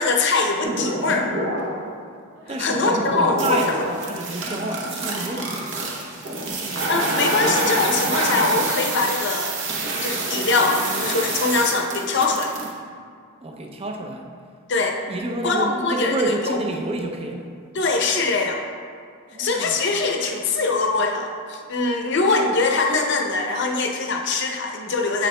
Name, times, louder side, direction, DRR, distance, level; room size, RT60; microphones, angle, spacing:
voice 1, 0.0-1.3 2.6-3.8 6.9-9.6 10.0-12.5 14.7-15.0 15.4-16.6 17.7-18.6 19.4-25.3, left 3 dB, 55° left, 2 dB, 0.6 m, -22 dB
sound 1, 0.6-2.0 2.4-12.7, right 2 dB, 60° right, 0.8 m, -27 dB
voice 2, 2.5-5.8 13.4-14.3 15.1-17.5 19.3-19.7, right 2 dB, 30° right, 2 dB, 0.5 m, -29 dB
7.9 x 6.3 x 2.2 m, 2.2 s
head